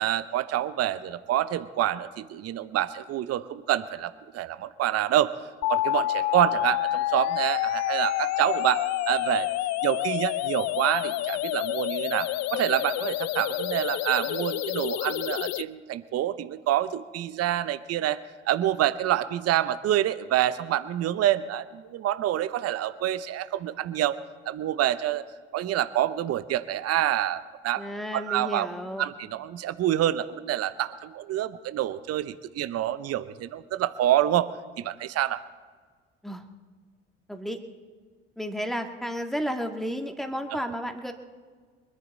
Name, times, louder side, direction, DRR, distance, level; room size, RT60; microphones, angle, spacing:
voice 1, 0.0-5.3 5.7-9.5 9.8-24.2 24.5-25.2 25.5-27.8 28.1-28.7 29.0-34.5 34.8-35.4, right 12 dB, 45° right, 14 dB, 0.8 m, -27 dB
sound 1, 5.6-15.6, left 16 dB, 50° left, 0.5 m, -28 dB
voice 2, 27.8-29.0 36.2-36.4 37.3-37.6 38.4-41.1, equal, ahead, 4 dB, 2.0 m, -32 dB
24.5 x 11.0 x 4.2 m, 1.5 s
figure-of-eight pair, 55°, 34 cm